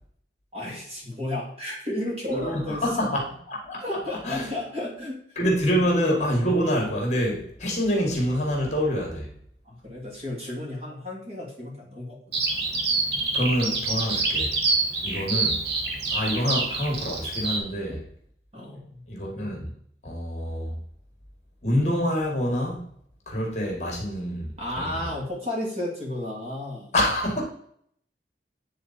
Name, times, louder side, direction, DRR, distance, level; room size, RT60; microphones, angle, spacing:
voice 1, 0.5-3.1 3.8-5.2 9.7-12.5 17.9-18.0 18.5-19.0 24.6-26.9, left 1 dB, 35° right, 2.3 m, -33 dB
voice 2, 2.3-3.8 4.2-4.5 5.4-9.3 13.3-14.5 15.0-15.6 16.1-18.0 19.1-19.7 20.0-20.7 21.6-22.8 23.3-25.1 26.9-27.4, equal, 40° left, 1.8 m, -26 dB
Bird vocalization bird call bird song, 12.3-17.6, right 3 dB, 70° right, 1.3 m, -26 dB
8.8 x 3.7 x 4.2 m
head